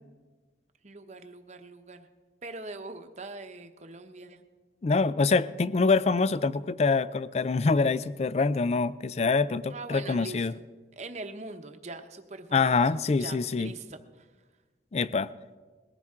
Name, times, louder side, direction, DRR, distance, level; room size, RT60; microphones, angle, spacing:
voice 1, 0.8-2.1 2.4-4.4 9.7-10.5 11.0-12.8 13.2-14.3, right 2 dB, 40° right, 7 dB, 0.9 m, -42 dB
voice 2, 4.8-10.5 12.5-13.7 14.9-15.3, left 4 dB, 35° left, 17 dB, 0.4 m, -25 dB
20.5 x 15.0 x 3.7 m, 1.4 s
head